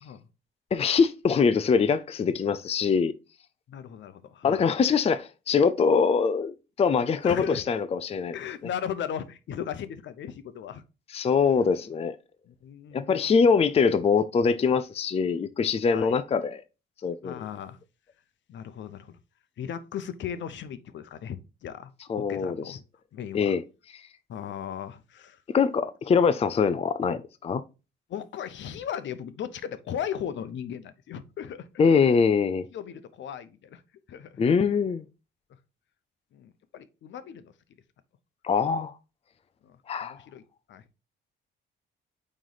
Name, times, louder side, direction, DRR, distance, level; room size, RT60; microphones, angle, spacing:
voice 1, 0.7-3.1 4.4-8.4 11.1-12.2 12.9-16.6 17.0-17.5 22.1-22.8 23.3-23.6 23.9-24.0 25.5-27.6 31.8-32.7 34.4-35.0 38.4-39.0 39.9-40.2, left 5 dB, 30° left, 0.5 m, -23 dB
voice 2, 3.7-4.7 7.2-7.6 8.3-10.8 12.5-13.3 15.9-16.1 17.2-17.8 18.5-19.2 19.6-22.8 23.1-23.6 24.3-25.4 28.1-32.1 32.7-33.8 34.1-34.4 36.3-37.5 39.6-40.4 40.7-40.8, left 9 dB, 70° left, 0.8 m, -37 dB
8.8 x 3.2 x 4.0 m
cardioid pair, 90°, 20 cm